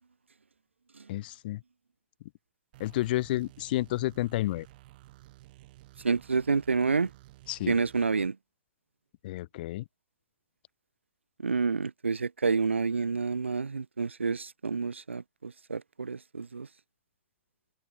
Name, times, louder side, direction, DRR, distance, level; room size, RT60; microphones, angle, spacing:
voice 1, 1.1-1.6 2.8-4.7 7.5-7.7 9.2-9.8, left 16 dB, 50° left, 0.6 m, -30 dB
sound 1, 2.7-8.3, right 18 dB, 50° right, 5.0 m, -53 dB
voice 2, 6.0-7.1 7.7-8.4 11.4-16.7, right 4 dB, 85° right, 0.4 m, -29 dB
figure-of-eight pair, 105°, 6 cm